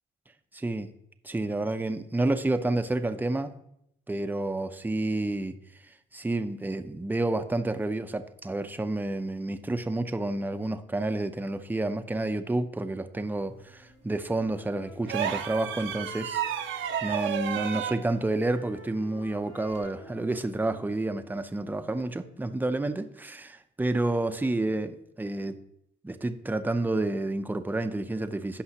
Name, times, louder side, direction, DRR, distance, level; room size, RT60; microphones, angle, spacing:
voice 1, 0.5-0.9 1.2-3.5 4.1-5.5 6.1-24.9 25.2-25.6 26.0-28.6, right 2 dB, 10° right, 8 dB, 0.6 m, -30 dB
Wind instrument woodwind instrument, 13.6-17.2 17.5-21.5, left 4 dB, 70° left, 1.9 m, -50 dB
sound 1, 15.1-18.0 19.7-19.9, right 9 dB, 75° right, 0.8 m, -31 dB
16.0 x 5.4 x 2.9 m, 0.76 s
cardioid pair, 90°, 20 cm